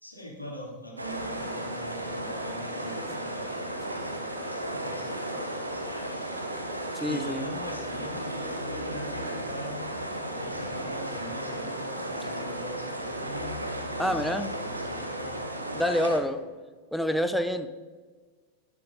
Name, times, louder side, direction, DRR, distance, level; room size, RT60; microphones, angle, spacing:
voice 1, 0.0-6.6 7.0-9.8 10.3-15.5, equal, 85° left, -2 dB, 2.8 m, -42 dB
sound 1, 1.0-16.2, right 1 dB, 80° right, 1.4 m, -34 dB
voice 2, 6.9-7.4 14.0-14.5 15.8-16.4 16.9-17.8, equal, ahead, 8 dB, 0.6 m, -27 dB
18.0 x 7.0 x 3.9 m, 1.4 s
figure-of-eight pair, 90°, 0 cm